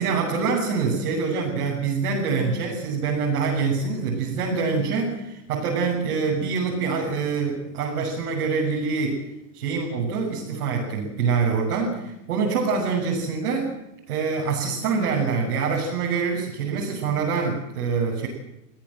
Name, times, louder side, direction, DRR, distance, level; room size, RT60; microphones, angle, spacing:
voice 1, 0.0-9.3 9.5-13.8 14.1-18.3, right 5 dB, 65° right, -4 dB, 7.3 m, -25 dB
25.5 x 17.0 x 7.9 m, 0.88 s
supercardioid pair, 165°, 48 cm